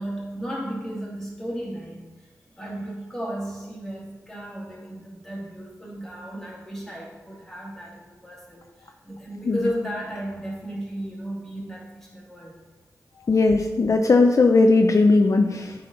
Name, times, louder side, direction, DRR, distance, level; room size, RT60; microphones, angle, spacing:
voice 1, 0.0-2.3 2.5-12.6, equal, 5° left, -4 dB, 2.2 m, -34 dB
voice 2, 13.3-15.7, left 3 dB, 55° left, 4 dB, 0.5 m, -18 dB
8.6 x 4.2 x 3.9 m, 1.2 s
cardioid pair, 65°, 7 cm